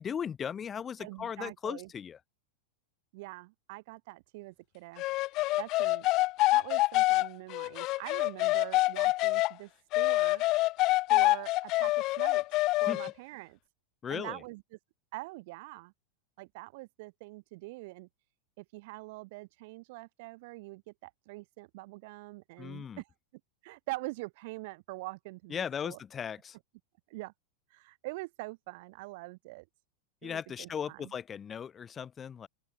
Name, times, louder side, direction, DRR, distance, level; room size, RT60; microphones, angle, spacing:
voice 1, 0.0-2.2 12.9-13.1 14.0-14.4 22.6-23.0 25.5-26.6 30.2-32.5, left 7 dB, 20° left, 2.8 m, -37 dB
voice 2, 1.0-1.9 3.1-5.0 5.6-6.1 6.5-10.4 11.1-12.4 12.8-13.6 14.1-14.6 15.1-15.9 16.4-18.1 18.6-23.1 23.6-26.0 27.1-27.3 27.7-29.6 30.2-31.1, right 23 dB, 50° right, 3.2 m, -44 dB
sound 1, 5.0-9.5 9.9-13.1, left 19 dB, 40° left, 0.5 m, -26 dB
open air
figure-of-eight pair, 90°, 0 cm